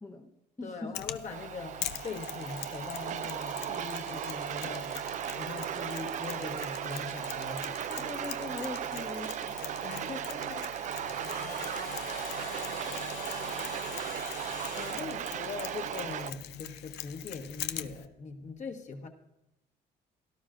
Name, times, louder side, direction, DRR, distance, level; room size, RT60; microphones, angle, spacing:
voice 1, 0.0-0.9 7.9-9.5, left 2 dB, 15° left, 1.0 m, -41 dB
voice 2, 0.6-7.8 9.8-10.8 11.9-12.1 14.8-19.1, left 4 dB, 45° left, 1.3 m, -41 dB
Mechanisms, 0.9-18.0, left 13 dB, 75° left, 0.6 m, -43 dB
sound 1, 1.3-16.3, right 10 dB, 50° right, 0.4 m, -37 dB
sound 2, 1.9-14.9, left 6 dB, 60° left, 3.3 m, -47 dB
17.0 x 12.0 x 2.5 m
cardioid pair, 110°, 17 cm